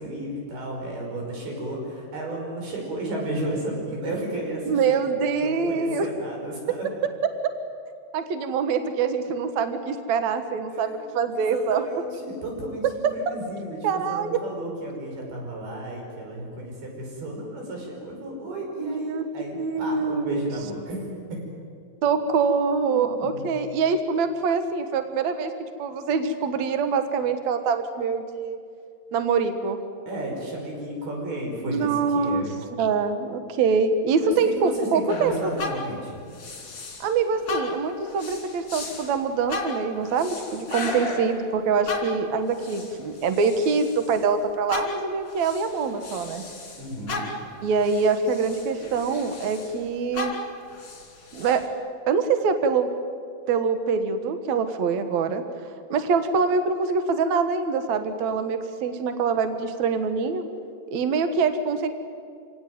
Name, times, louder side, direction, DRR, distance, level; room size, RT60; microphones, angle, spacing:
voice 1, 0.0-5.0 5.4-6.9 10.8-11.1 11.3-21.0 21.3-21.4 22.9-23.5 30.1-32.5 34.2-36.2 46.8-47.3, right 1 dB, 50° right, 0 dB, 7.2 m, -33 dB
voice 2, 4.7-6.1 7.4-7.5 8.1-11.8 13.8-14.4 18.8-19.3 19.6-20.5 22.0-25.5 25.8-28.6 29.1-29.8 31.7-32.4 32.8-35.5 37.0-46.4 47.6-50.3 51.3-51.6 52.1-52.9 53.5-55.4 55.9-60.4 60.9-61.9, right 5 dB, 90° right, 8 dB, 1.6 m, -24 dB
sound 1, 35.1-37.2 37.5-44.2 44.7-49.8 50.1-51.7, left 2 dB, 30° left, 3.1 m, -36 dB
27.5 x 17.5 x 9.3 m, 2.3 s
omnidirectional pair, 5.6 m